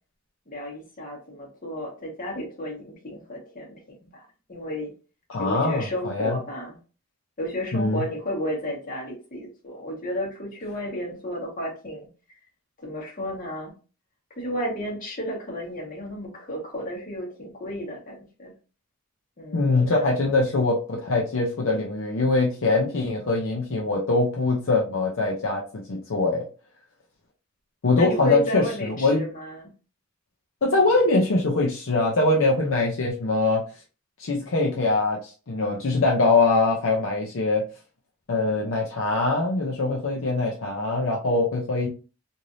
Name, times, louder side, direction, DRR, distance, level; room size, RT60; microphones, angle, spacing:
voice 1, 0.5-4.9 5.4-6.8 7.4-12.1 12.8-13.7 14.4-18.5 19.4-20.2 28.0-29.7, equal, 40° left, -1 dB, 1.2 m, -32 dB
voice 2, 5.3-6.4 7.7-8.0 19.5-26.5 27.8-29.3 30.6-33.6 34.2-37.6 38.3-41.9, left 3 dB, 70° left, -1 dB, 0.6 m, -23 dB
3.2 x 2.6 x 2.6 m, 0.35 s
head